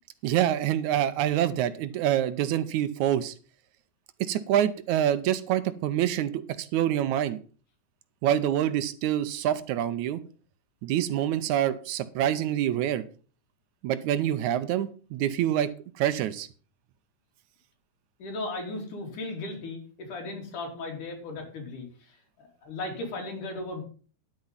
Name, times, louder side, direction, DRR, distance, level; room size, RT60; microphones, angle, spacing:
voice 1, 0.2-3.3 4.2-7.4 8.2-10.2 10.8-13.0 13.8-15.7 16.0-16.5, right 11 dB, 80° right, 14 dB, 2.2 m, -26 dB
voice 2, 18.2-23.8, left 2 dB, 85° left, 3 dB, 4.5 m, -36 dB
11.0 x 9.0 x 5.6 m, 0.39 s
omnidirectional pair, 3.5 m